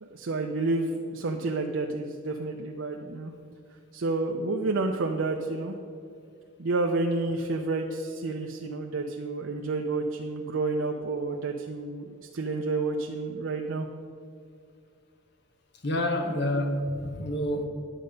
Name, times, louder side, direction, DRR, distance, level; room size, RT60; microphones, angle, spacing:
voice 1, 0.0-3.3 3.9-5.8 6.6-13.9, right 3 dB, 75° right, 0.6 m, -30 dB
voice 2, 15.8-17.6, left 1 dB, 55° left, 1.0 m, -28 dB
10.0 x 6.7 x 5.2 m
head